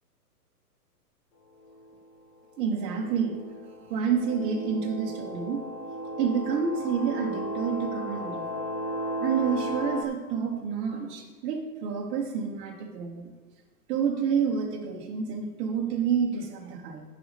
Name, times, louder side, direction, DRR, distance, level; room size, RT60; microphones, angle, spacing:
sound 1, 1.7-1.8 2.6-10.0, equal, 45° left, 1.3 m, -35 dB
voice 1, 2.6-3.4 3.6-5.6 6.2-8.6 9.2-13.3 13.9-17.0, right 6 dB, 10° right, 0 dB, 0.7 m, -29 dB
10.0 x 5.1 x 6.3 m, 1.4 s
hypercardioid pair, 150°, 48 cm